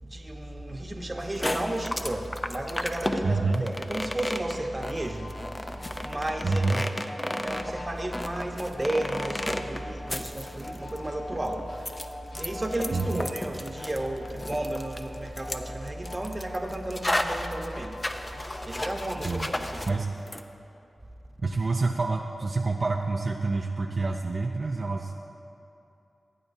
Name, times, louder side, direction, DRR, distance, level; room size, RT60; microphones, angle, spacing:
voice 1, 0.0-12.0 12.4-18.0 18.6-20.0, right 1 dB, 30° right, 2 dB, 1.1 m, -33 dB
sound 1, 1.2-20.0 20.3-20.4, left 1 dB, 25° left, 0.6 m, -33 dB
voice 2, 3.2-3.6 6.4-6.8 12.9-13.3 19.2-20.2 21.4-25.1, right 3 dB, 55° right, 1 dB, 0.5 m, -28 dB
sound 2, 4.8-19.5, left 1 dB, 85° left, 1.2 m, -44 dB
16.5 x 8.6 x 2.7 m, 2.8 s
cardioid pair, 40°, 0 cm